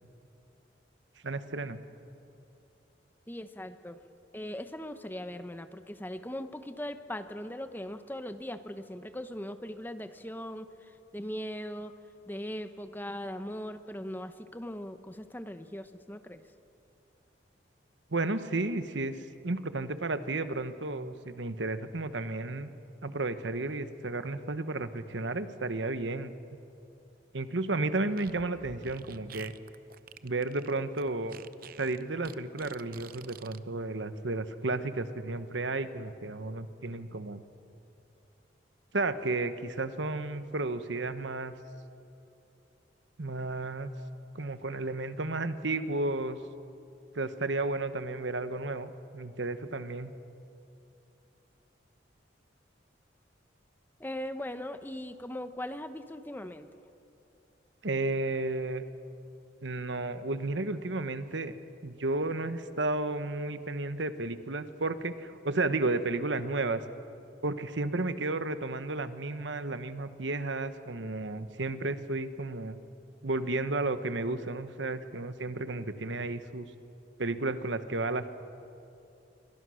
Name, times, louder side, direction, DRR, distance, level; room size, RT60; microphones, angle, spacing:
voice 1, 1.2-1.8 18.1-19.2 19.4-22.7 23.0-26.3 27.3-29.5 30.2-31.4 31.8-37.4 38.9-41.6 43.2-43.9 44.3-46.4 47.1-50.1 57.8-58.8 59.6-61.5 61.8-66.8 67.4-72.8 73.2-76.7 77.2-78.3, right 2 dB, 75° right, 11 dB, 1.1 m, -32 dB
voice 2, 3.3-4.0 4.3-11.9 12.3-16.5 54.0-56.7, left 1 dB, 10° left, 9 dB, 0.9 m, -39 dB
Fart, 28.1-33.6, right 6 dB, 50° right, 0.7 m, -49 dB
27.5 x 24.0 x 6.4 m, 2.7 s
head